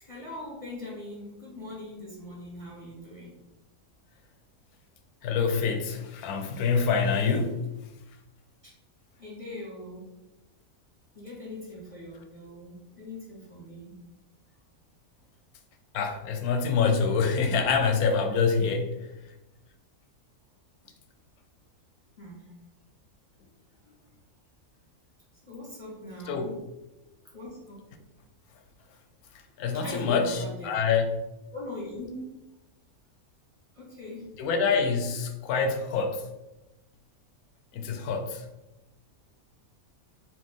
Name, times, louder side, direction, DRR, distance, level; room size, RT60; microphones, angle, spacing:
voice 1, 0.0-3.4 8.6-8.7 9.2-10.0 11.1-14.0 22.2-22.5 23.8-23.9 25.4-26.5 27.2-27.8 29.7-30.8 31.5-32.3 33.7-34.3, left 1 dB, 25° right, 1.6 m, -41 dB
voice 2, 5.2-7.7 15.9-19.0 26.3-26.4 29.6-31.2 34.4-36.2 37.7-38.4, left 5 dB, 90° left, 1.1 m, -26 dB
4.3 x 2.6 x 3.6 m
omnidirectional pair, 1.5 m